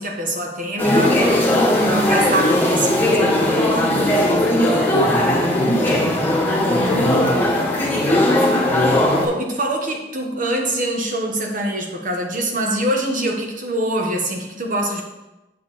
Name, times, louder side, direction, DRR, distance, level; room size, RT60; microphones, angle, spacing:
voice 1, 0.0-3.6 6.7-7.2 9.2-15.0, right 1 dB, 50° right, 2 dB, 1.4 m, -24 dB
sound 1, 0.8-9.3, left 1 dB, 10° left, 1.4 m, -18 dB
voice 2, 3.8-6.2 6.7-7.4 7.9-9.0, left 1 dB, 80° left, -3 dB, 0.9 m, -27 dB
7.7 x 6.7 x 4.2 m, 1.0 s
head